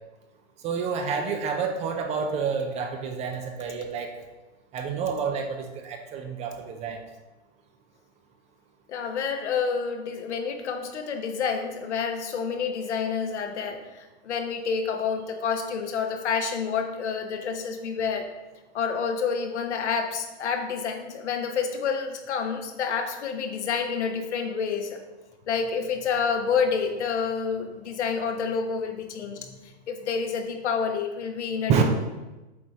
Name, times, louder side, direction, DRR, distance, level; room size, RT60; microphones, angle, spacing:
voice 1, 0.6-4.1 4.7-7.0 31.7-31.8, right 6 dB, 20° right, 5 dB, 0.5 m, -28 dB
voice 2, 8.9-18.3 18.7-25.0 25.5-29.5 29.9-31.8, left 6 dB, 75° left, 4 dB, 1.2 m, -28 dB
8.0 x 4.1 x 4.7 m, 1.1 s
hypercardioid pair, 130°, 35 cm